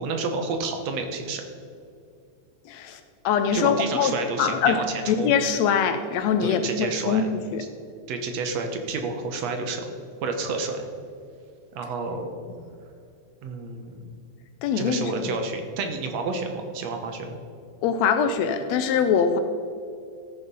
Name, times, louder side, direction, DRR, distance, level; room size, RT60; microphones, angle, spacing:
voice 1, 0.0-1.4 3.5-5.3 6.4-7.3 8.1-9.9 10.2-10.9 11.8-12.3 13.4-14.0 14.8-17.3, right 4 dB, 70° right, 5 dB, 2.0 m, -30 dB
voice 2, 2.7-3.0 3.3-4.1 4.4-4.8 5.1-7.3 7.5-7.6 14.6-15.4 17.8-19.4, left 7 dB, 80° left, 8 dB, 1.7 m, -23 dB
14.0 x 6.6 x 5.4 m, 2.5 s
omnidirectional pair, 3.4 m